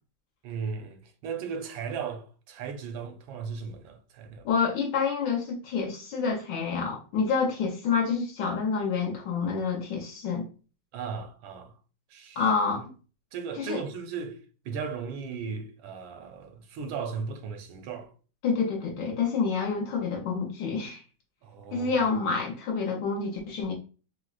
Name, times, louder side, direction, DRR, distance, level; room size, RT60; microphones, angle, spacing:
voice 1, 0.4-4.5 10.9-11.7 12.1-12.4 13.3-18.1 21.4-22.0, right 6 dB, 90° right, 1.4 m, -36 dB
voice 2, 4.4-10.5 12.4-12.9 13.6-13.8 18.4-21.0 21.7-23.7, left 5 dB, 70° left, 1.2 m, -28 dB
4.4 x 2.0 x 2.3 m
omnidirectional pair, 2.1 m